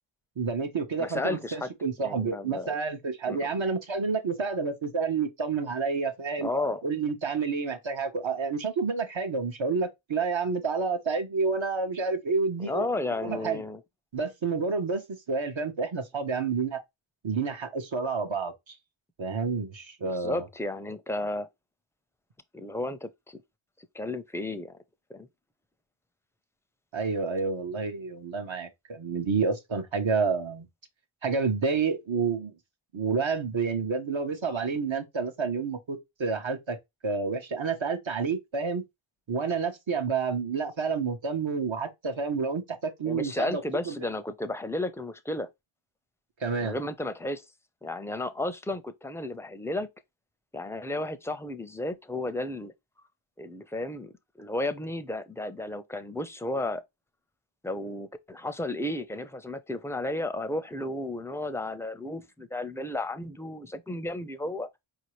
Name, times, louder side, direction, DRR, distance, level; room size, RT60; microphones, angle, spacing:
voice 1, 0.4-6.5 6.8-12.8 13.2-13.6 14.1-16.8 17.2-18.7 19.2-20.4 26.9-30.7 31.2-32.5 32.9-36.8 37.0-38.8 39.3-44.1 46.4-46.8, right 5 dB, 65° right, 0.9 m, -29 dB
voice 2, 1.0-1.7 2.0-2.7 3.3-3.4 6.4-6.8 12.6-13.8 20.1-21.5 22.5-23.4 23.9-24.7 25.1-25.3 43.0-45.5 46.6-47.4 47.8-49.9 50.5-52.7 53.4-56.8 57.6-64.7, left 2 dB, 5° left, 0.5 m, -33 dB
4.7 x 2.8 x 3.0 m
wide cardioid pair, 60°, 50 cm